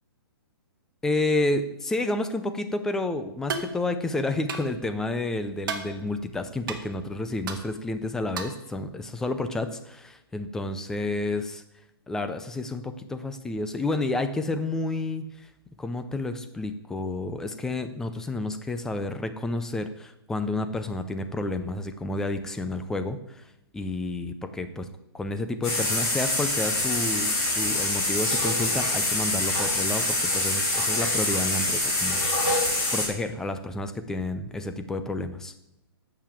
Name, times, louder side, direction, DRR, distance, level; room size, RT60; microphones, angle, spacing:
voice 1, 1.0-11.6 12.1-15.2 15.8-23.4 23.7-24.9 25.1-32.5 32.9-35.5, left 2 dB, 5° left, 9 dB, 0.4 m, -30 dB
sound 1, 3.5-3.7 4.5-4.7 5.6-5.9 6.7-6.8 7.5-7.6 8.4-8.6, right 5 dB, 55° right, 1.5 m, -32 dB
sound 2, 25.6-33.1, left 2 dB, 20° left, 3.6 m, -25 dB
8.9 x 6.8 x 7.4 m, 0.84 s
hypercardioid pair, 160°, 13 cm